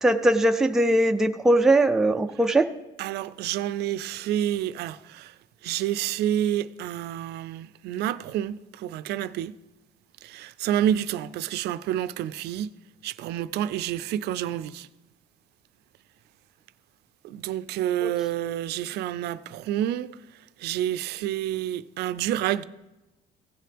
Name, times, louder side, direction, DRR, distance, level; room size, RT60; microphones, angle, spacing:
voice 1, 0.0-2.7 18.0-18.1, right 1 dB, 5° right, 0.4 m, -20 dB
voice 2, 3.0-5.4 5.6-9.6 10.2-12.8 13.0-14.9 17.2-20.1 20.6-22.6, right 11 dB, 75° right, 0.4 m, -29 dB
16.0 x 7.6 x 3.4 m
cardioid pair, 110°, 17 cm